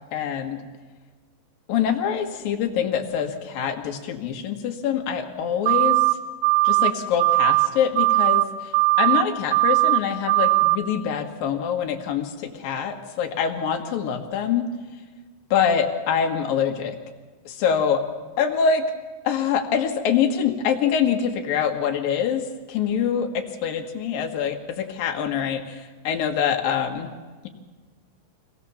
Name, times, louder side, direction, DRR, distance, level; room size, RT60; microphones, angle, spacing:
voice 1, 0.1-0.6 1.7-6.0 6.6-8.4 9.0-14.7 15.5-17.0 17.5-18.0 18.4-18.8 19.2-27.1, left 7 dB, 60° left, 4 dB, 2.9 m, -24 dB
sound 1, 5.7-6.1 6.4-6.9 7.2-7.7 8.0-8.4 8.7-9.2 9.5-10.0 10.3-10.8, right 25 dB, 75° right, 2.6 m, -19 dB
25.0 x 18.0 x 7.2 m, 1.4 s
omnidirectional pair, 5.2 m